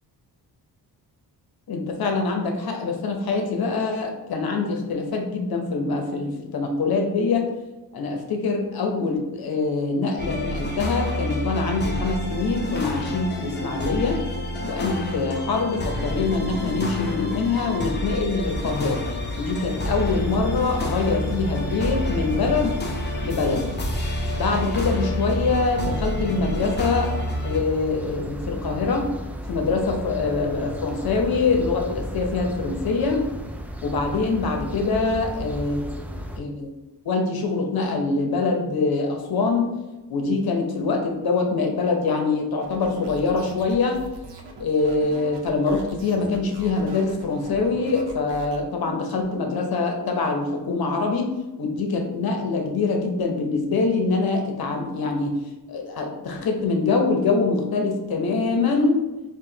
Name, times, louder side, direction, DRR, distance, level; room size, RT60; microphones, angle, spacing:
voice 1, 1.7-7.5 7.9-14.2 14.7-19.0 19.4-22.8 23.2-23.7 24.3-27.1 27.4-29.1 29.5-33.2 33.8-35.8 36.4-36.7 37.0-39.7 40.1-44.0 44.6-55.4 55.7-59.0, left 4 dB, 65° left, 2 dB, 0.8 m, -24 dB
sound 1, 10.2-27.6, left 1 dB, 25° left, 0.7 m, -29 dB
sound 2, 18.4-36.4, equal, 5° right, 0.4 m, -34 dB
sound 3, 42.6-48.6, right 1 dB, 75° right, 0.8 m, -42 dB
4.9 x 2.4 x 2.8 m, 1.1 s
cardioid pair, 80°, 40 cm